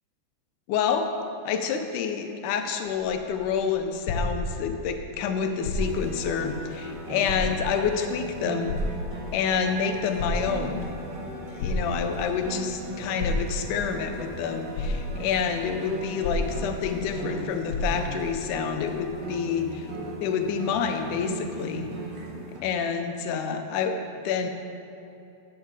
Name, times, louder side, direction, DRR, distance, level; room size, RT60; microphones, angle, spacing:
voice 1, 0.7-1.1 1.5-8.8 9.3-10.9 11.5-19.9 20.2-21.9 22.6-24.5, left 6 dB, 80° left, 6 dB, 2.2 m, -28 dB
sound 1, 2.9-4.9 5.5-6.2 6.6-6.7 7.2-7.9 8.7-9.5 10.0-10.9 11.6-12.3 13.2-13.9 14.4-14.5 14.7-15.5 16.2-17.0 17.3-17.4 17.7-18.3 19.0-19.1, left 2 dB, 65° left, 2.2 m, -32 dB
sound 2, 5.8-22.6, right 1 dB, 40° right, 1.6 m, -38 dB
10.5 x 8.3 x 4.8 m, 2.8 s
omnidirectional pair, 3.7 m